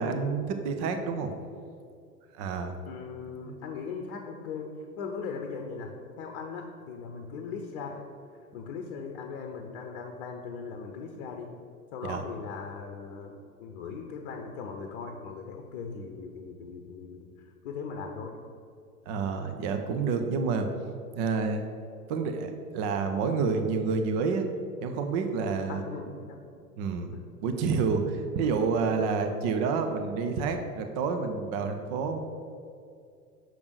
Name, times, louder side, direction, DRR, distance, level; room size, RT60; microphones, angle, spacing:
voice 1, 0.0-1.3 2.3-2.7 3.4-3.6 12.1-12.2 19.1-20.7 21.2-21.6 22.1-24.5 24.8-25.8 26.8-27.1 27.4-32.2, right 5 dB, 25° right, 6 dB, 0.4 m, -29 dB
voice 2, 2.9-8.0 8.5-11.6 11.9-18.4 25.7-26.4 27.1-27.3, left 5 dB, 45° left, 4 dB, 0.9 m, -39 dB
6.2 x 5.2 x 6.4 m, 2.4 s
figure-of-eight pair, 100°, 47 cm